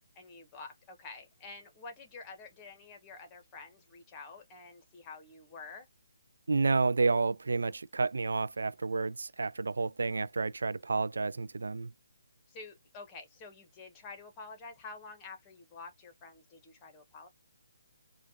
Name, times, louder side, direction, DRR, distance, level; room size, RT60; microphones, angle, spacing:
voice 1, 0.2-5.9 12.5-17.3, left 4 dB, 20° left, 1.3 m, -48 dB
voice 2, 6.5-11.9, right 4 dB, 80° right, 0.3 m, -30 dB
4.9 x 2.4 x 2.8 m
hypercardioid pair, 155°, 0 cm